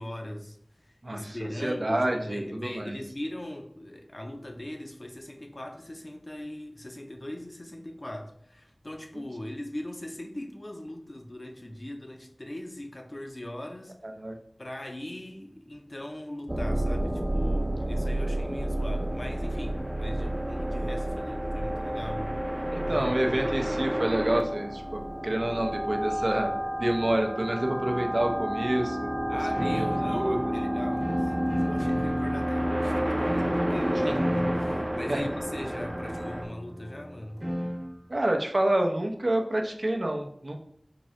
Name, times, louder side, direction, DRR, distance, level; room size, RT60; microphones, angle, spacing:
voice 1, 0.0-14.0 14.6-23.6 29.3-37.5, left 1 dB, 55° left, 4 dB, 0.5 m, -40 dB
voice 2, 1.0-1.4 1.6-3.0 14.2-14.4 22.7-26.5 26.8-29.1 29.6-30.4 35.1-35.2 38.1-40.6, right 1 dB, 75° right, 3 dB, 0.5 m, -28 dB
sound 1, 16.5-36.5, right 1 dB, 25° right, 0.5 m, -30 dB
sound 2, 29.5-37.9, equal, 50° right, 1.0 m, -34 dB
3.8 x 2.7 x 3.1 m, 0.67 s
wide cardioid pair, 40°, 0 cm